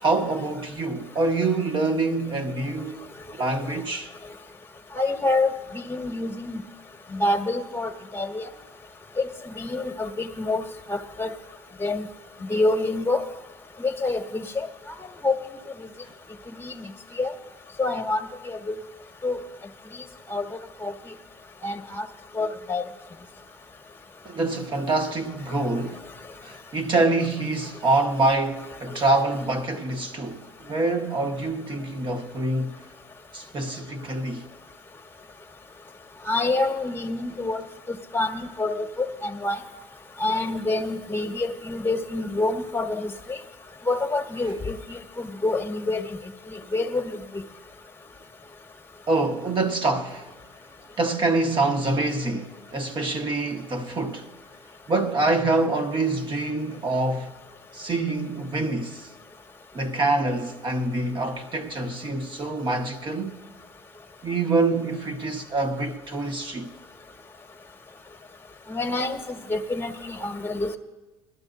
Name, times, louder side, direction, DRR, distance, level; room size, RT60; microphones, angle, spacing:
voice 1, 0.0-4.1 24.2-26.0 26.4-32.8 33.3-34.5 49.1-50.3 51.0-54.3 54.9-57.3 57.7-59.1 59.7-63.4 64.2-66.7, right 2 dB, 40° right, 1.3 m, -26 dB
voice 2, 4.9-6.6 7.1-8.5 9.2-9.3 9.5-10.6 10.9-11.3 11.8-12.0 12.4-13.2 13.8-14.7 15.2-15.3 16.6-16.9 17.2-17.3 17.8-18.8 19.2-19.4 20.3-20.5 20.8-20.9 21.6-22.1 22.3-22.8 28.9-29.0 36.3-37.6 38.1-39.6 40.2-43.4 43.9-46.2 46.5-47.4 68.7-69.2 69.5-70.7, left 2 dB, 15° left, 1.3 m, -27 dB
20.0 x 12.5 x 2.6 m
supercardioid pair, 90°, 13 cm